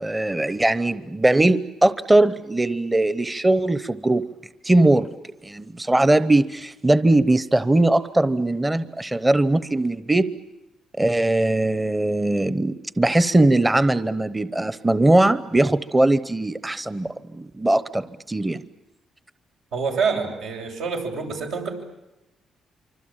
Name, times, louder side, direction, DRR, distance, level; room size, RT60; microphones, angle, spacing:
voice 1, 0.0-4.3 4.6-5.1 5.4-10.3 11.0-17.1 17.3-18.6, right 2 dB, 15° right, 14 dB, 0.9 m, -20 dB
voice 2, 19.7-21.7, right 5 dB, 85° right, 1 dB, 7.5 m, -26 dB
26.0 x 25.0 x 9.0 m, 0.95 s
cardioid pair, 90°, 0 cm